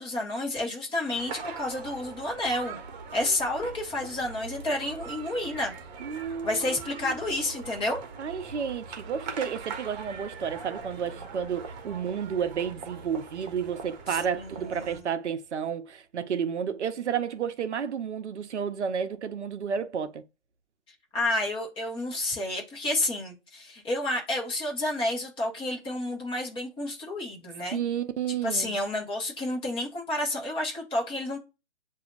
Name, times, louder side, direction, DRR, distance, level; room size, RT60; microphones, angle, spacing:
voice 1, 0.0-2.8 3.1-5.7 6.4-8.0 14.1-15.0 21.1-27.8 28.3-31.4, left 1 dB, 15° left, 1.6 m, -30 dB
sound 1, 1.1-15.0, right 5 dB, 35° right, 1.1 m, -41 dB
voice 2, 6.0-6.7 7.1-7.2 8.2-20.2 27.7-28.8, right 7 dB, 75° right, 0.7 m, -31 dB
7.8 x 2.8 x 2.4 m
hypercardioid pair, 140°, 35 cm